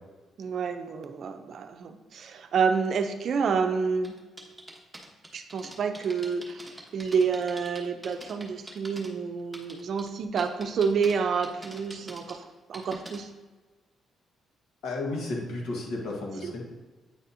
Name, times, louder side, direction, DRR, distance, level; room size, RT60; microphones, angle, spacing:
voice 1, 0.4-4.2 5.3-13.3 16.4-16.5, right 5 dB, 60° right, 8 dB, 0.5 m, -29 dB
sound 1, 4.0-9.1 9.4-10.1 10.4-11.1 11.4-13.2, right 1 dB, 10° right, 1.0 m, -44 dB
voice 2, 14.8-16.6, left 2 dB, 80° left, -1 dB, 1.4 m, -33 dB
8.8 x 4.1 x 2.7 m, 1.3 s
cardioid pair, 90°, 0 cm